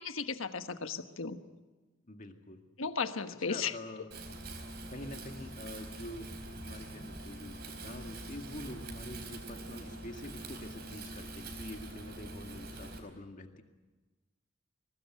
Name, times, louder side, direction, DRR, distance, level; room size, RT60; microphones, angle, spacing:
voice 1, 0.0-1.4 2.8-3.7, left 5 dB, 75° left, 8 dB, 1.3 m, -35 dB
voice 2, 2.1-2.6 3.5-4.1 4.9-6.3 6.6-13.6, left 1 dB, 40° left, 5 dB, 2.0 m, -46 dB
Wind, 4.1-13.0, right 2 dB, 50° right, 4.4 m, -44 dB
22.5 x 19.5 x 8.0 m, 1.2 s
head